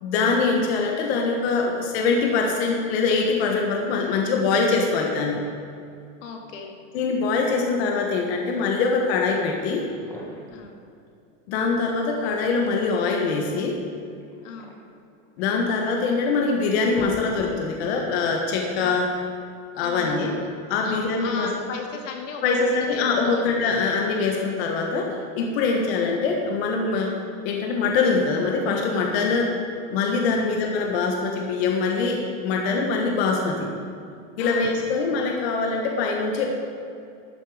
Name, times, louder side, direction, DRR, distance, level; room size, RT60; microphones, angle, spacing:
voice 1, 0.0-5.4 6.9-9.8 11.5-13.8 15.4-19.1 19.8-20.3 20.7-21.5 22.4-27.2 27.4-29.6 29.9-33.7 34.4-36.5, left 4 dB, 55° left, 1 dB, 1.5 m, -23 dB
voice 2, 6.2-6.8 10.5-10.8 14.4-14.8 18.8-19.1 19.7-20.5 20.8-23.5 25.7-25.9 30.3-30.6 34.4-34.7, left 4 dB, 85° left, 2 dB, 2.1 m, -36 dB
sound 1, 9.9-10.6 12.1-12.9 14.2-15.6 16.2-16.3 16.6-17.8, left 1 dB, 5° left, 1.2 m, -42 dB
12.5 x 10.0 x 5.0 m, 2.5 s
supercardioid pair, 175°, 37 cm